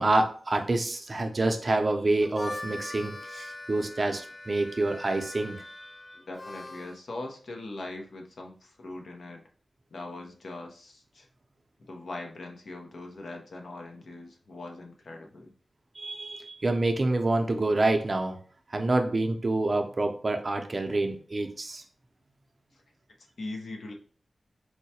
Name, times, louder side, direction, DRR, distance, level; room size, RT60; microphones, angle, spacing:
voice 1, 0.0-5.7 16.0-18.4 18.7-21.8, right 2 dB, 45° right, 5 dB, 0.5 m, -27 dB
Harmonica, 2.2-7.0, left 2 dB, 40° left, 0.3 m, -42 dB
voice 2, 6.1-9.4 9.9-11.3 11.9-15.5 23.4-23.9, left 2 dB, 75° left, 2 dB, 0.7 m, -41 dB
4.6 x 2.1 x 2.8 m, 0.42 s
wide cardioid pair, 70°, 0 cm